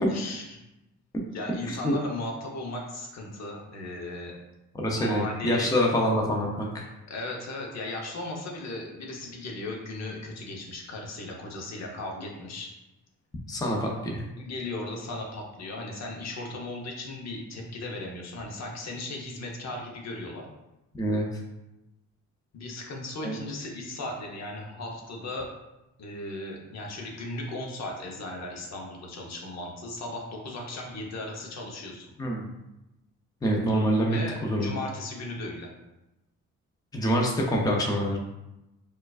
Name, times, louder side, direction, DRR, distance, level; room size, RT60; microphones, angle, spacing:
voice 1, 0.1-0.5 1.3-4.3 5.0-5.7 7.1-12.7 14.4-20.5 22.5-25.5 26.0-32.1 34.1-35.7, left 2 dB, 60° left, 0 dB, 0.8 m, -36 dB
voice 2, 4.7-6.9 13.5-14.2 20.9-21.3 23.2-23.3 32.2-32.5 33.4-34.7 36.9-38.2, equal, 10° left, -1 dB, 0.6 m, -26 dB
4.4 x 2.4 x 2.4 m, 0.95 s
cardioid pair, 90°, 30 cm